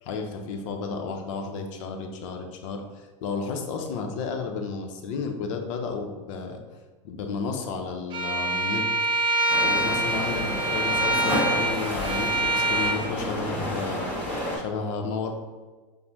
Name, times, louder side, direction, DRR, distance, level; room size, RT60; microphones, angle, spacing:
voice 1, 0.0-6.6 7.0-8.9 9.6-14.1 14.5-15.3, left 4 dB, 75° left, 4 dB, 0.6 m, -32 dB
Bowed string instrument, 8.1-13.0, right 2 dB, 30° right, 0.6 m, -25 dB
sound 1, 9.5-14.6, equal, 10° left, 1.4 m, -30 dB
5.1 x 2.1 x 2.9 m, 1.3 s
supercardioid pair, 125°, 16 cm